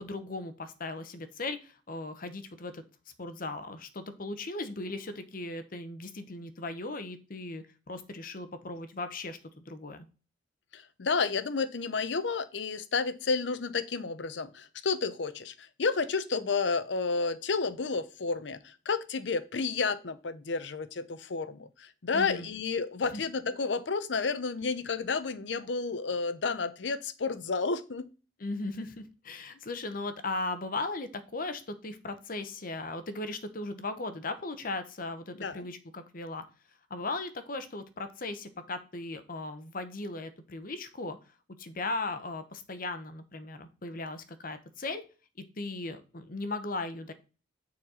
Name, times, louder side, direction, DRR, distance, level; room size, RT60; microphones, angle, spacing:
voice 1, 0.0-2.8 3.2-10.1 22.1-22.5 23.1-23.2 28.4-36.4 36.9-41.2 41.6-45.0 45.6-47.1, left 2 dB, 50° left, 1.0 m, -37 dB
voice 2, 10.7-28.1 35.3-35.7, left 4 dB, 80° left, 0.7 m, -31 dB
9.2 x 4.2 x 4.3 m
head